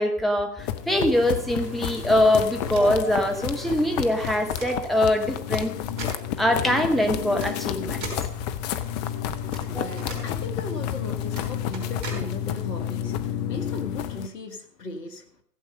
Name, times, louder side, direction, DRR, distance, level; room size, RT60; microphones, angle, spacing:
voice 1, 0.0-5.7 6.4-8.1 9.6-9.9, left 1 dB, ahead, 4 dB, 0.8 m, -23 dB
sound 1, 0.6-14.3, left 10 dB, 25° left, 0.6 m, -31 dB
sound 2, 1.1-4.5, right 1 dB, 85° right, 2.9 m, -41 dB
sound 3, 2.6-3.0 4.1-4.7 5.5-5.6 6.0-6.2 7.4-7.5 8.0-8.3 9.5-9.6 9.9-10.2 11.3-11.4 11.7-12.2, right 3 dB, 35° right, 4.6 m, -37 dB
voice 2, 9.4-15.4, left 2 dB, 75° left, 8 dB, 2.0 m, -37 dB
15.5 x 7.9 x 5.3 m, 0.63 s
figure-of-eight pair, 110°, 49 cm